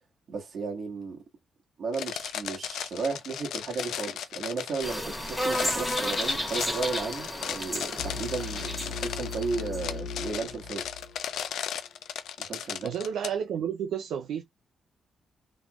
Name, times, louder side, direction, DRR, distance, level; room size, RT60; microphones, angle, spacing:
voice 1, 0.3-1.2 1.8-10.8 12.4-12.9, right 4 dB, 60° right, 1.6 m, -34 dB
sound 1, 1.9-13.3, left 9 dB, 90° left, 0.4 m, -36 dB
sound 2, 4.8-9.8, equal, 5° left, 1.6 m, -32 dB
sound 3, 8.0-11.9, left 4 dB, 70° left, 1.2 m, -38 dB
voice 2, 12.8-14.4, right 8 dB, 90° right, 0.4 m, -31 dB
3.4 x 3.0 x 2.4 m
cardioid pair, 85°, 0 cm